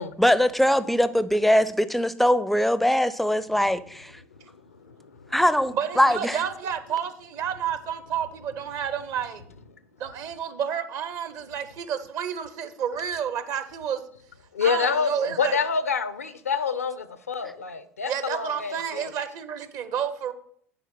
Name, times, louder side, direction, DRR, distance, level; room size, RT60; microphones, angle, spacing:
voice 1, 0.2-4.1 5.3-6.4 17.4-17.5, equal, ahead, 0.5 m, -22 dB
voice 2, 4.8-5.3 14.5-19.0, left 6 dB, 80° left, 0.6 m, -27 dB
voice 3, 5.7-9.4 10.0-14.0 14.6-15.6 18.1-20.3, right 8 dB, 50° right, 0.9 m, -30 dB
10.0 x 4.7 x 6.0 m
figure-of-eight pair, 65°, 8 cm